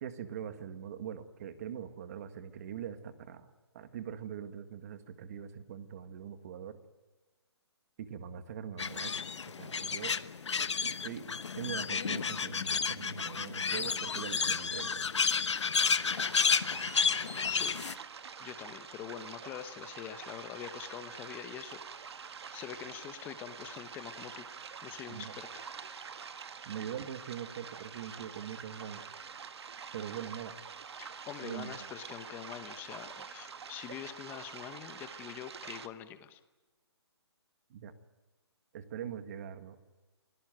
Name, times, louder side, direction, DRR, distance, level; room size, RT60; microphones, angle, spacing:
voice 1, 0.0-3.5 3.7-6.8 8.0-9.1 9.6-10.2 10.8-11.3 11.5-15.0 25.1-25.3 26.6-29.0 29.9-30.5 31.4-31.7 37.7-37.9 38.7-39.8, right 9 dB, 35° right, 10 dB, 1.7 m, -42 dB
sound 1, 8.8-17.9, left 5 dB, 90° left, 1.1 m, -31 dB
sound 2, 16.0-35.9, right 6 dB, 65° right, 1.6 m, -46 dB
voice 2, 17.5-17.8 18.4-21.8 22.5-24.5 24.8-25.7 31.0-36.4, left 11 dB, 15° left, 11 dB, 1.0 m, -45 dB
25.5 x 17.0 x 9.1 m, 1.2 s
hypercardioid pair, 165°, 14 cm